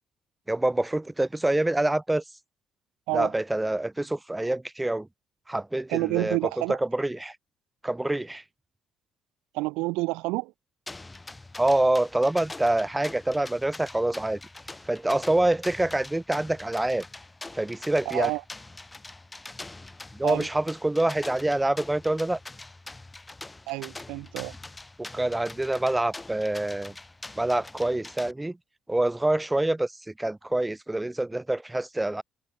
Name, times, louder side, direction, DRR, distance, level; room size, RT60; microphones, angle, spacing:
voice 1, 0.5-2.2 3.1-5.1 5.5-7.4 7.8-8.4 11.6-14.4 14.8-17.0 17.5-18.3 20.1-22.4 25.0-26.9 27.3-28.6 28.9-32.2, right 1 dB, 15° right, 6.7 m, -26 dB
voice 2, 5.9-6.8 9.5-10.5 18.1-18.4 20.2-20.5 23.7-24.5, right 24 dB, 80° right, 2.5 m, -28 dB
sound 1, 10.9-28.3, left 2 dB, 20° left, 7.2 m, -44 dB
hypercardioid pair, 50°, 0 cm